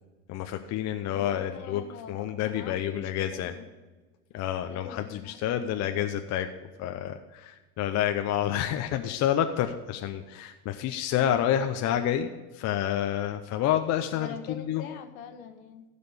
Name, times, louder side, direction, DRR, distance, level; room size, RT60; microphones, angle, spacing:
voice 1, 0.3-1.8 2.1-3.5 4.3-6.5 6.8-14.8, left 10 dB, 35° left, 6 dB, 0.8 m, -29 dB
voice 2, 1.1-3.7 4.7-6.0 14.1-15.8, left 7 dB, 65° left, 6 dB, 1.6 m, -44 dB
15.5 x 5.2 x 6.7 m, 1.2 s
hypercardioid pair, 90°, 45 cm